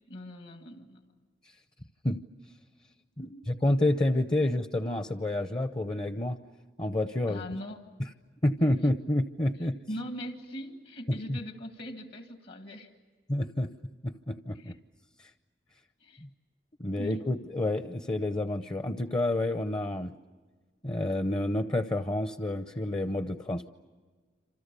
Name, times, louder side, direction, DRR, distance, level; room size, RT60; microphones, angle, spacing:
voice 1, 0.1-1.1 3.2-3.4 4.4-4.5 7.3-7.8 9.6-12.9 14.5-14.8 16.0-16.2 17.0-17.3, equal, 60° left, 5 dB, 2.0 m, -41 dB
voice 2, 3.2-6.4 6.8-7.4 8.4-9.8 11.3-11.4 13.3-13.7 14.0-14.7 16.2-16.3 16.8-20.1 20.8-23.7, left 1 dB, 25° left, 10 dB, 0.7 m, -29 dB
28.0 x 27.0 x 6.8 m, 1.4 s
head